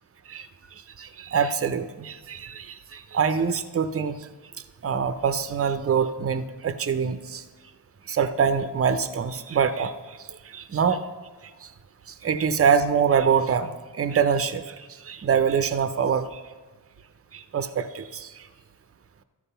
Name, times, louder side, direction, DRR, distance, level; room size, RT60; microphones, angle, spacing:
voice 1, 1.0-4.1 4.8-7.4 8.1-9.9 10.5-11.0 12.2-13.7 14.0-14.7 15.1-16.3 17.3-18.3, right 6 dB, 30° right, 11 dB, 0.6 m, -24 dB
13.0 x 4.8 x 5.6 m, 1.3 s
supercardioid pair, 45°, 44 cm